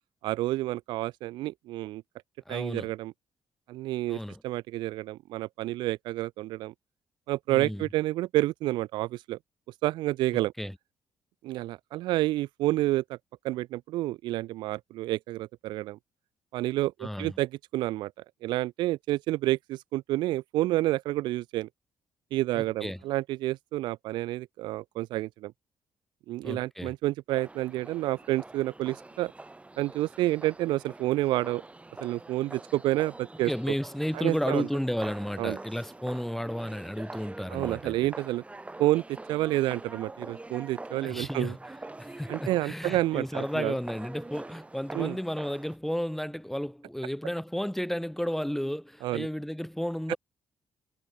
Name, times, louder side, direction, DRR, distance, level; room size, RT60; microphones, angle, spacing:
voice 1, 0.2-2.0 2.5-3.1 3.7-6.7 7.3-9.4 9.8-10.5 11.4-13.2 13.4-16.0 16.5-18.1 18.4-21.7 22.3-25.5 26.3-29.3 29.8-31.6 32.0-33.7 34.1-34.7 35.4-35.6 37.5-38.4 38.8-41.6 42.3-43.7 44.9-45.2 49.0-49.3 50.1-50.2, right 16 dB, 85° right, 0.4 m, -29 dB
voice 2, 2.5-2.9 4.1-4.4 7.5-7.8 10.6-10.7 17.0-17.4 22.5-23.0 26.4-26.9 33.4-38.0 41.0-41.6 42.0-50.2, equal, 5° left, 1.8 m, -33 dB
sound 1, 27.3-45.8, right 2 dB, 15° right, 2.2 m, -45 dB
cardioid pair, 75°, 8 cm